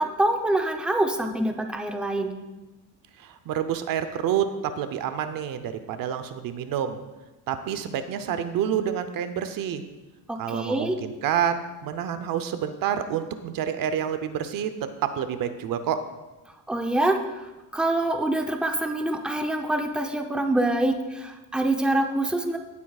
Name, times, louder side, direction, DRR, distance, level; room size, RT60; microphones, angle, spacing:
voice 1, 0.0-2.3 10.3-11.0 16.7-17.5 17.7-22.6, right 1 dB, 5° right, 3 dB, 0.7 m, -25 dB
voice 2, 3.2-7.0 7.5-9.8 10.4-16.0, right 9 dB, 75° right, 10 dB, 0.8 m, -28 dB
17.0 x 8.3 x 2.4 m, 1.1 s
cardioid pair, 130°, 35 cm